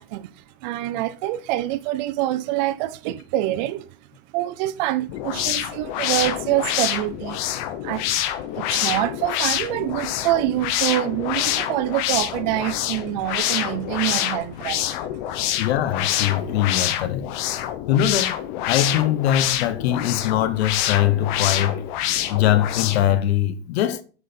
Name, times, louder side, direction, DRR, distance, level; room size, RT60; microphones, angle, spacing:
voice 1, 0.0-3.9 4.3-7.4 7.8-8.1 8.5-14.9, right 15 dB, 45° right, 0.5 m, -26 dB
sound 1, 5.1-23.2, left 12 dB, 50° left, 0.9 m, -26 dB
voice 2, 15.6-17.3 17.9-18.4 18.7-21.8 22.3-24.0, left 11 dB, 90° left, 1.0 m, -22 dB
8.3 x 5.3 x 4.3 m
supercardioid pair, 165°, 31 cm